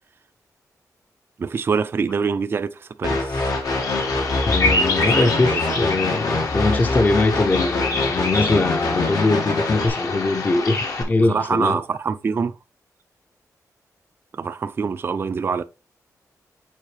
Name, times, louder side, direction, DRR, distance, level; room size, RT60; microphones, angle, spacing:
voice 1, 1.4-3.4 4.9-5.6 11.2-12.6 14.3-15.6, right 5 dB, 40° right, 0.3 m, -25 dB
sound 1, 3.0-9.9, left 2 dB, 85° left, 1.8 m, -25 dB
Bird vocalization bird call bird song, 3.6-11.0, left 3 dB, 65° left, 1.3 m, -26 dB
voice 2, 4.4-11.8, left 2 dB, 30° left, 0.6 m, -21 dB
7.2 x 4.7 x 3.2 m
wide cardioid pair, 140°, 6 cm